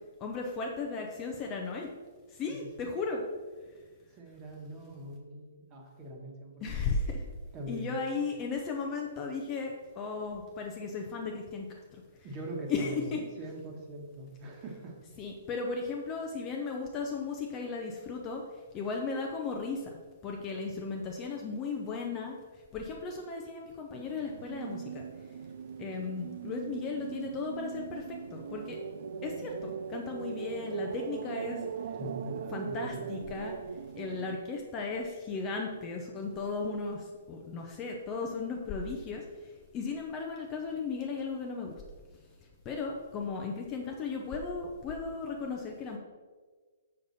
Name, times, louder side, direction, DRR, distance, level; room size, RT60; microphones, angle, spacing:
voice 1, 0.2-1.9 2.3-3.3 6.6-7.2 7.7-12.0 12.7-13.2 15.2-18.4 18.7-19.9 20.2-22.4 22.7-25.0 25.8-28.8 29.2-31.6 32.5-33.6 34.0-41.8 42.6-46.0, left 4 dB, 20° left, 1 dB, 0.6 m, -36 dB
voice 2, 2.5-2.9 4.1-6.8 7.5-8.0 12.2-15.0 31.9-33.2, right 1 dB, 20° right, 0 dB, 1.3 m, -42 dB
sound 1, 23.9-34.4, right 7 dB, 55° right, 0.3 m, -40 dB
7.1 x 6.5 x 4.1 m, 1.5 s
hypercardioid pair, 170°, 0 cm